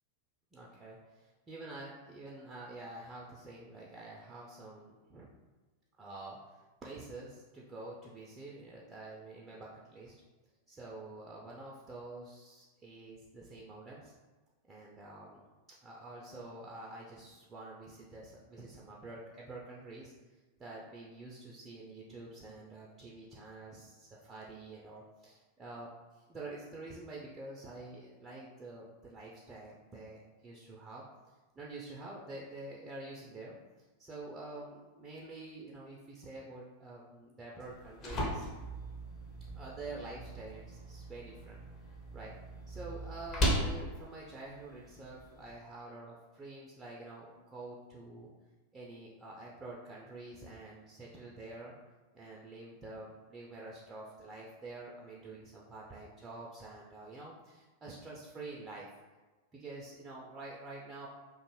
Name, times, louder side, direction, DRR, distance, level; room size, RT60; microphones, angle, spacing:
voice 1, 0.5-5.3 6.0-10.2 10.7-14.1 14.7-31.0 31.5-38.5 39.5-41.6 42.1-42.4 42.7-48.3 48.7-51.7 52.1-58.9 59.5-61.1, right 2 dB, 20° right, -4 dB, 0.3 m, -48 dB
sound 1, 37.6-45.6, equal, 30° left, 0.6 m, -38 dB
2.5 x 2.1 x 3.0 m, 1.2 s
figure-of-eight pair, 90°, 0 cm